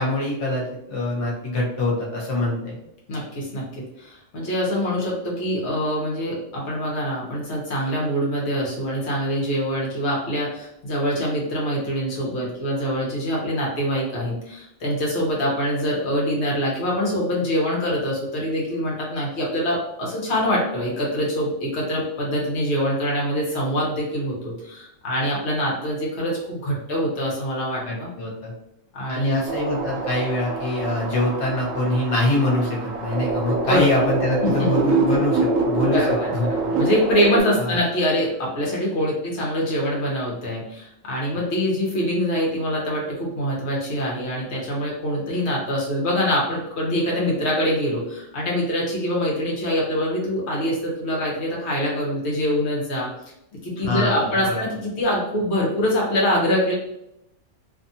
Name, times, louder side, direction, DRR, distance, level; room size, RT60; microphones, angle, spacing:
voice 1, 0.0-2.8 27.9-28.5 29.1-36.0 36.3-36.5 37.6-37.8 53.8-54.6, left 1 dB, 40° left, -3 dB, 0.5 m, -24 dB
voice 2, 3.1-28.1 28.9-29.4 33.7-33.9 34.4-34.7 35.9-53.1 53.6-56.7, equal, 60° left, -4 dB, 1.1 m, -24 dB
sound 1, 29.5-37.4, right 3 dB, 85° right, 1.0 m, -25 dB
2.7 x 2.4 x 2.6 m, 0.83 s
omnidirectional pair, 1.3 m